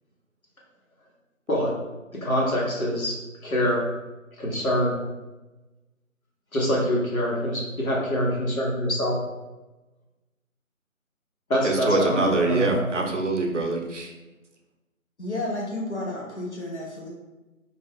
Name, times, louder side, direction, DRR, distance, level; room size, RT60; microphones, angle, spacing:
voice 1, 2.2-3.1 3.4-3.8 4.4-4.9 6.5-9.2 11.5-12.9, equal, 80° left, -4 dB, 1.2 m, -25 dB
voice 2, 11.6-14.1, right 3 dB, 60° right, 2 dB, 0.5 m, -24 dB
voice 3, 15.2-17.1, left 1 dB, 55° left, -3 dB, 0.9 m, -31 dB
2.5 x 2.3 x 3.5 m, 1.1 s
figure-of-eight pair, 170°, 41 cm